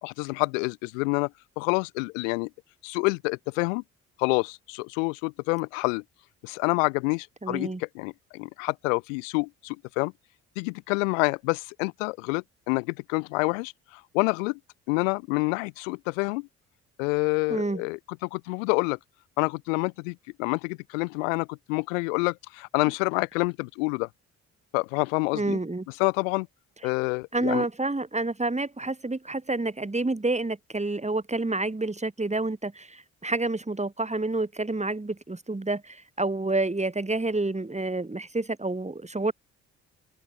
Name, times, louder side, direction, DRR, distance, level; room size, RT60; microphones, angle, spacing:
voice 1, 0.0-1.3 1.6-2.5 2.8-3.8 4.2-6.0 6.4-10.1 10.5-14.6 14.9-16.5 17.0-19.0 19.4-24.1 24.7-25.6 26.0-26.5 26.8-27.6, left 30 dB, 80° left, 1.8 m, -28 dB
voice 2, 7.4-7.8 17.5-17.8 25.3-25.8 27.3-39.3, right 2 dB, 15° right, 5.1 m, -29 dB
hypercardioid pair, 50°, 39 cm